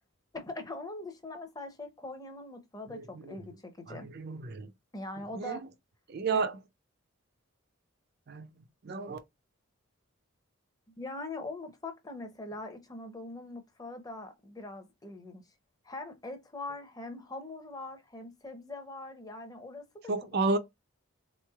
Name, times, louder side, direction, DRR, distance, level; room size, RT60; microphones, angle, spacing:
voice 1, 0.3-4.1 4.9-5.6 6.3-6.4 11.0-15.4 15.8-20.6, left 2 dB, 20° left, 0.6 m, -42 dB
voice 2, 2.9-3.3 3.9-4.7 5.4-5.7 6.1-6.6 8.3-8.5 8.8-9.2 20.1-20.6, right 3 dB, 50° right, 0.4 m, -32 dB
3.6 x 3.1 x 2.3 m
head